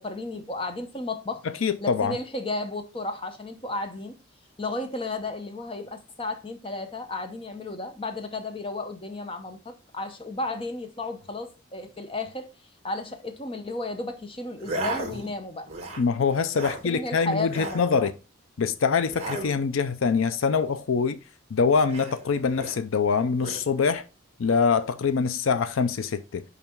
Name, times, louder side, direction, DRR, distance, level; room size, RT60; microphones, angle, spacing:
voice 1, 0.0-1.4 1.8-4.2 4.6-12.5 12.8-15.7 16.8-18.1, left 2 dB, 25° left, 0.8 m, -33 dB
voice 2, 1.6-2.2 16.0-18.1 18.6-21.2 21.5-24.0 24.4-26.4, left 5 dB, 75° left, 0.5 m, -24 dB
sound 1, 14.6-15.3 15.7-16.1 16.4-16.8 17.4-17.9 19.0-19.6 21.8-22.8 23.4-23.7, right 2 dB, 30° right, 1.3 m, -35 dB
5.5 x 5.0 x 4.5 m
head